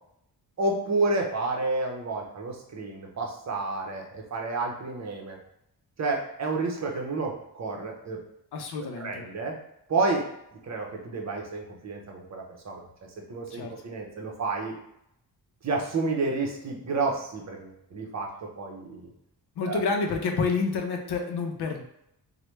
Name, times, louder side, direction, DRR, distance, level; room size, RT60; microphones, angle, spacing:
voice 1, 0.6-5.4 6.0-8.2 9.0-9.5 9.9-10.2 10.6-12.8 13.3-14.8 15.6-19.1 19.6-19.8, right 3 dB, 45° right, 0 dB, 0.6 m, -30 dB
voice 2, 8.5-9.2 13.5-13.7 19.6-21.8, left 4 dB, 80° left, 3 dB, 0.6 m, -28 dB
3.2 x 2.2 x 3.1 m, 0.78 s
wide cardioid pair, 120°, 39 cm